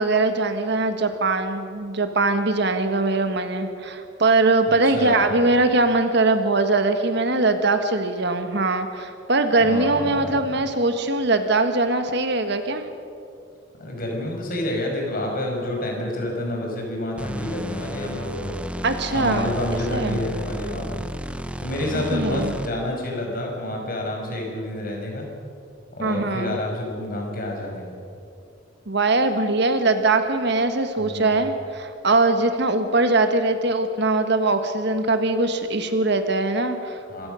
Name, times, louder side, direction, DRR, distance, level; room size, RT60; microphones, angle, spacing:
voice 1, 0.0-12.9 18.8-19.5 19.9-20.2 21.9-22.5 26.0-26.6 28.9-37.0, right 2 dB, 60° right, 8 dB, 1.5 m, -21 dB
voice 2, 4.7-5.4 9.6-10.4 13.8-18.6 19.1-21.1 21.6-25.3 25.9-28.0 31.0-31.4 37.1-37.3, left 1 dB, 50° left, 0 dB, 5.4 m, -29 dB
sound 1, 17.2-22.9, equal, 5° right, 0.6 m, -33 dB
26.0 x 16.0 x 6.4 m, 2.5 s
head